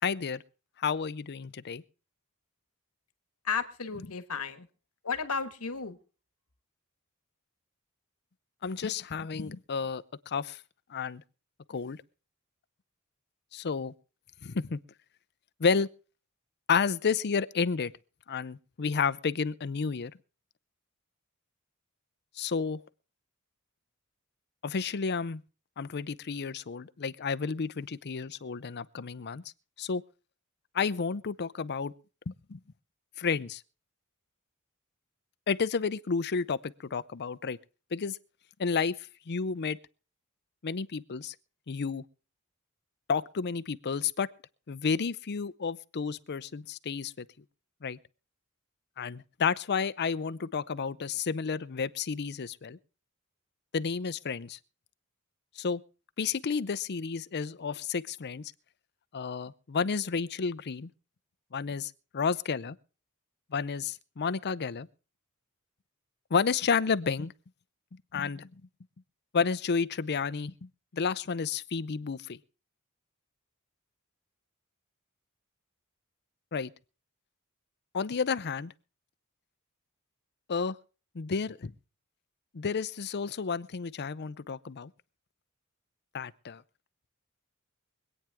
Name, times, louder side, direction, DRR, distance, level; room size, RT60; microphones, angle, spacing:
voice 1, 0.0-0.4 0.8-1.8 8.6-10.6 10.9-11.2 11.7-12.0 13.5-13.9 14.4-14.8 15.6-15.9 16.7-17.9 18.3-20.1 22.4-22.8 24.6-25.4 25.8-29.4 29.8-30.0 30.7-31.9 32.3-32.6 33.2-33.6 35.5-37.6 37.9-38.2 38.6-38.9 39.3-39.8 40.6-41.3 41.7-42.0 43.1-44.3 44.7-47.3 47.8-48.0 49.0-52.8 53.7-54.6 55.6-55.8 56.2-58.5 59.1-60.9 61.5-62.8 63.5-64.9 66.3-67.3 68.1-68.5 69.3-72.4 76.5-76.7 77.9-78.7 80.5-80.8 81.1-81.7 82.5-84.9 86.1-86.6, left 5 dB, 50° left, 0.6 m, -31 dB
voice 2, 3.4-4.7 5.0-6.0, left 5 dB, 80° left, 1.4 m, -33 dB
24.5 x 9.0 x 3.5 m
head